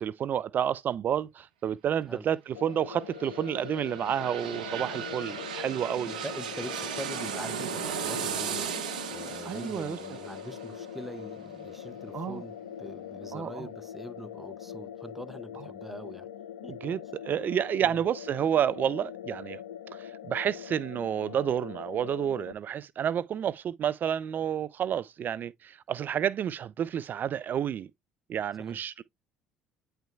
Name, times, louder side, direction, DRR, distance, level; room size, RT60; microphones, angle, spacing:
voice 1, 0.0-6.1 9.4-10.0 12.1-12.4 13.3-13.7 16.8-17.0 17.3-19.6 19.9-27.9 28.3-29.0, right 9 dB, 45° right, 0.3 m, -30 dB
sound 1, 2.5-22.5, left 10 dB, 85° left, 0.4 m, -43 dB
sound 2, 2.9-12.5 12.9-13.0, right 7 dB, 85° right, 0.8 m, -37 dB
voice 2, 6.1-16.3 16.6-16.9 17.8-18.0 28.6-28.8, right 1 dB, 5° right, 0.8 m, -43 dB
9.1 x 4.4 x 2.3 m
hypercardioid pair, 60°, 4 cm